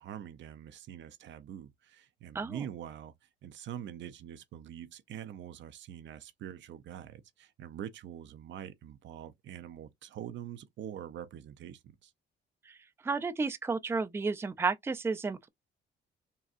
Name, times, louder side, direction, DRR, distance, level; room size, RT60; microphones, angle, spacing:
voice 1, 0.0-3.1 3.4-12.1, right 10 dB, 70° right, 0.6 m, -44 dB
voice 2, 13.0-15.5, right 4 dB, 10° right, 0.4 m, -32 dB
4.0 x 2.3 x 2.4 m
cardioid pair, 90°, 20 cm